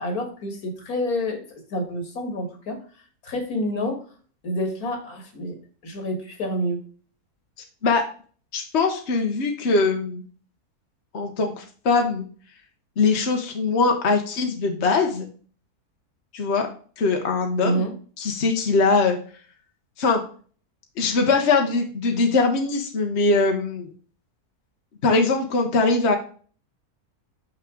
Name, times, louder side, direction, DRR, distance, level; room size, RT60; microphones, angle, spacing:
voice 1, 0.0-1.4 1.7-2.8 3.2-4.0 4.4-5.5 5.8-6.8 17.6-17.9, equal, 70° left, 4 dB, 2.2 m, -28 dB
voice 2, 8.5-10.2 11.1-12.2 13.0-15.3 16.3-16.7 17.0-17.8 18.2-19.2 20.0-20.2 21.0-23.9 25.0-26.2, left 3 dB, 50° left, 3 dB, 1.2 m, -21 dB
6.4 x 5.9 x 3.7 m, 0.42 s
omnidirectional pair, 1.6 m